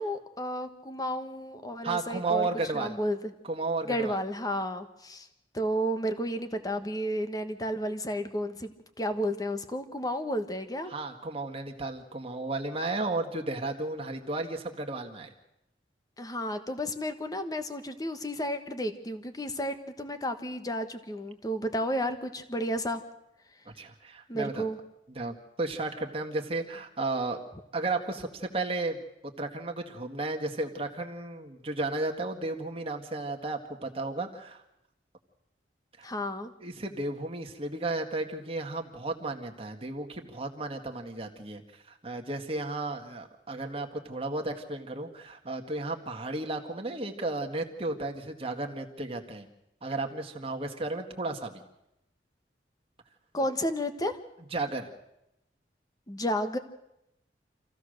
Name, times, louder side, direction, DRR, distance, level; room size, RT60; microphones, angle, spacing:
voice 1, 0.0-2.5 2.7-3.3 3.9-5.3 5.5-10.9 16.2-23.0 24.3-24.8 36.0-36.5 53.3-54.1 56.1-56.6, equal, 20° left, 8 dB, 1.3 m, -32 dB
voice 2, 1.8-3.0 3.4-4.2 10.9-15.3 23.7-24.7 25.1-27.4 27.7-29.0 29.4-34.6 36.6-41.6 41.9-49.5 49.8-51.6 54.5-54.9, right 2 dB, 35° right, 3 dB, 1.8 m, -33 dB
26.0 x 15.5 x 6.6 m, 0.86 s
head